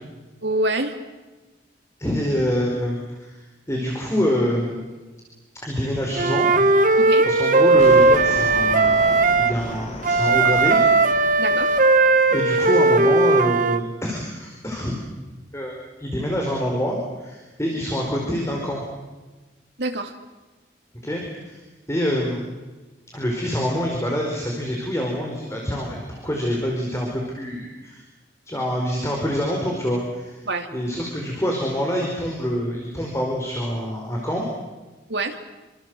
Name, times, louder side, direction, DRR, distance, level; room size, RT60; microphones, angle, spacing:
voice 1, 0.4-1.0 7.0-7.3 11.4-11.8 19.8-20.1 30.5-30.7 35.1-35.4, right 2 dB, 70° right, 5 dB, 3.0 m, -25 dB
voice 2, 2.0-3.4 3.7-4.9 5.6-6.7 7.2-10.8 12.3-14.9 15.5-18.9 21.0-21.6 21.9-22.4 23.1-28.0 28.5-30.4 30.7-34.4, equal, 15° left, 0 dB, 4.5 m, -26 dB
Wind instrument woodwind instrument, 6.2-9.5 10.0-13.8, right 3 dB, 45° right, 1.5 m, -17 dB
sound 1, 7.7-12.6, left 1 dB, 35° left, 2.7 m, -36 dB
26.5 x 25.5 x 7.9 m, 1.2 s
head